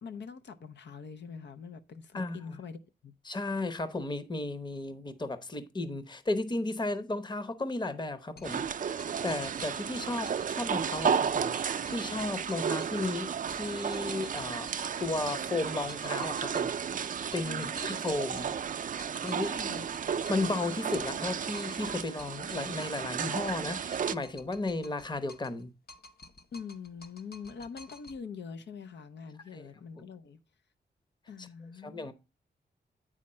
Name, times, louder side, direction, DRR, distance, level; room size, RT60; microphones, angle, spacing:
voice 1, 0.0-3.1 17.4-18.0 19.4-19.9 26.5-30.4 31.3-32.1, left 5 dB, 85° left, 0.6 m, -44 dB
voice 2, 3.3-8.9 9.2-14.7 15.0-16.7 17.3-18.5 19.2-19.6 20.3-25.7 29.5-29.6 30.0-30.1 31.4-31.5 31.8-32.1, left 2 dB, 25° left, 0.8 m, -34 dB
sound 1, 8.4-10.6 10.9-13.1 13.5-15.6 15.9-20.6 20.9-23.1 23.5-25.6 25.9-28.2, left 2 dB, 60° left, 0.9 m, -53 dB
sound 2, 8.4-24.1, right 7 dB, 50° right, 0.4 m, -33 dB
8.5 x 5.0 x 4.2 m
wide cardioid pair, 100°, 18 cm